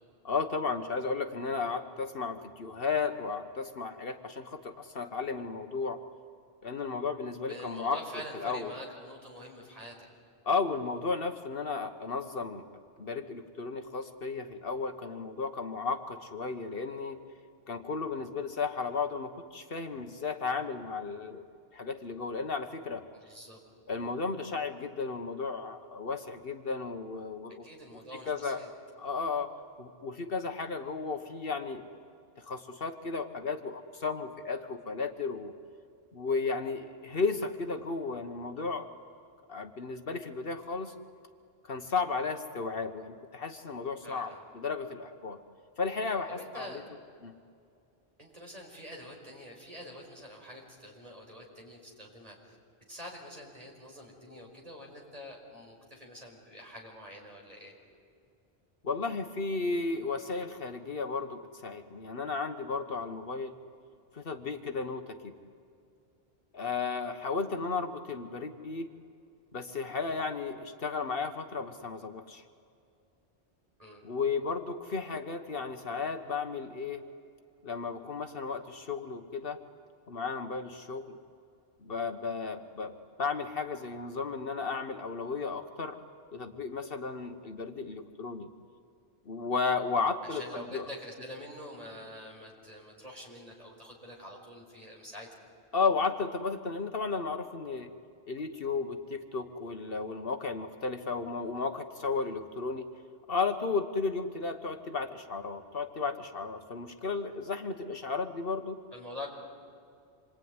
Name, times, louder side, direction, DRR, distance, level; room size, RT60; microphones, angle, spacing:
voice 1, 0.2-6.0 6.6-8.0 8.3-8.7 10.4-12.6 13.0-17.2 17.7-21.5 21.7-23.0 23.9-27.7 28.3-28.7 29.0-29.5 29.8-31.8 32.4-35.5 36.1-38.9 39.5-40.9 41.7-45.4 45.8-46.8 47.2-47.3 58.8-63.6 64.1-65.3 66.5-68.9 69.5-72.4 74.0-77.0 77.6-79.6 80.1-81.2 81.8-86.0 86.3-88.5 89.3-90.9 95.7-97.9 98.3-102.9 103.3-108.8, left 4 dB, 60° left, 6 dB, 1.3 m, -34 dB
voice 2, 7.5-10.1 23.1-23.6 27.6-28.7 44.0-44.4 46.3-46.9 48.2-52.6 52.9-57.7 73.8-74.0 90.2-95.4 108.9-109.3, equal, 35° right, -1 dB, 5.3 m, -46 dB
27.0 x 22.5 x 9.6 m, 2.5 s
omnidirectional pair, 1.1 m